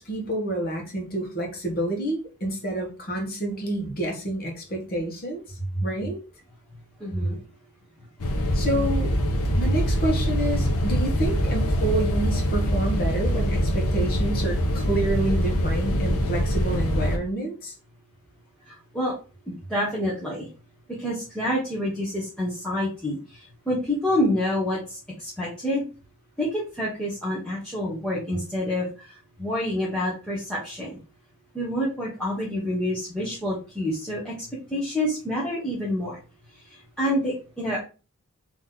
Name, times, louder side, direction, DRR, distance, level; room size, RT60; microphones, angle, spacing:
voice 1, 0.0-5.4 5.7-6.2 7.2-7.3 8.5-9.1 9.5-17.7, right 1 dB, 45° left, 2 dB, 1.4 m, -28 dB
voice 2, 7.0-7.4 18.7-19.1 19.5-20.5 21.0-25.8 26.4-31.0 31.5-34.3 34.7-36.2 36.7-37.8, left 1 dB, 5° left, -8 dB, 1.2 m, -28 dB
sound 1, 8.2-17.2, equal, 80° left, 0.8 m, -24 dB
3.9 x 3.1 x 3.8 m, 0.32 s
head